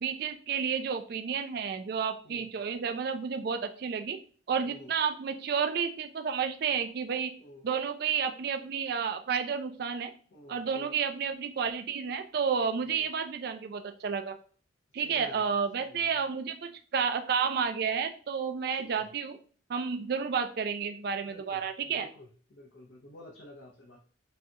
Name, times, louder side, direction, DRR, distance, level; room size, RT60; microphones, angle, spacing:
voice 1, 0.0-4.2 4.5-7.3 7.6-10.1 10.5-14.4 14.9-19.4 19.7-22.1, right 6 dB, 55° right, 7 dB, 0.3 m, -31 dB
voice 2, 10.3-10.9 12.8-13.1 14.9-15.5 15.8-16.1 18.7-19.1 21.2-24.0, left 1 dB, 75° left, -3 dB, 0.8 m, -51 dB
5.3 x 2.3 x 2.8 m, 0.42 s
head